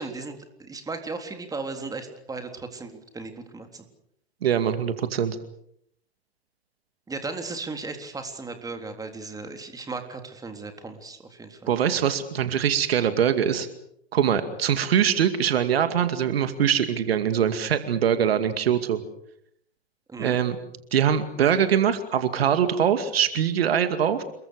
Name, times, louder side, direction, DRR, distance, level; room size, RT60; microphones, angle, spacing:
voice 1, 0.0-3.8 7.1-11.7 20.1-20.4, right 3 dB, 10° right, 6 dB, 3.7 m, -36 dB
voice 2, 4.4-5.4 11.7-13.7 14.1-19.0 20.2-20.6 20.9-24.2, right 8 dB, 65° right, 10 dB, 2.4 m, -23 dB
28.0 x 22.5 x 6.6 m, 0.73 s
figure-of-eight pair, 100°, 32 cm